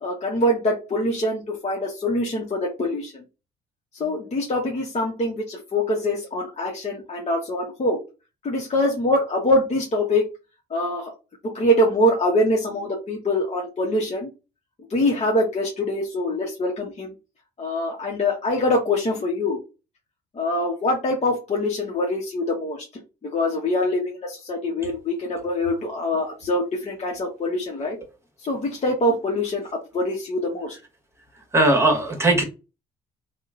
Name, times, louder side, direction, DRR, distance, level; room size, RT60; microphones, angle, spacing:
voice 1, 0.0-3.2 4.0-8.0 8.4-10.3 10.7-11.1 11.5-14.3 14.9-17.1 17.6-19.6 20.4-22.8 23.2-28.0 28.4-30.8, left 1 dB, 35° left, -1 dB, 0.8 m, -24 dB
voice 2, 31.5-32.4, right 2 dB, 15° right, 3 dB, 1.2 m, -18 dB
2.9 x 2.1 x 2.4 m, 0.30 s
hypercardioid pair, 50°, 21 cm